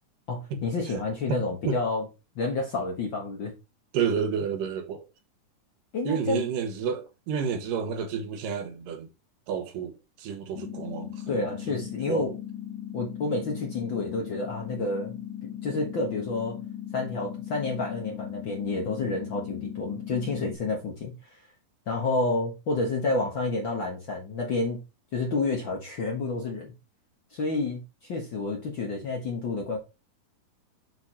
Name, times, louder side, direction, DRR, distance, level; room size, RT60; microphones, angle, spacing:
voice 1, 0.3-2.0 2.3-3.5 5.9-6.4 11.3-12.4 12.9-15.2 15.6-16.6 16.9-21.1 21.9-24.8 25.1-26.7 27.3-29.8, left 3 dB, 50° left, 1.5 m, -29 dB
voice 2, 1.3-1.8 3.9-5.1 6.0-9.1 9.5-12.3, right 6 dB, 80° right, 2.7 m, -31 dB
sound 1, 10.6-20.6, left 11 dB, 85° left, 1.6 m, -38 dB
6.3 x 4.8 x 4.2 m
omnidirectional pair, 3.8 m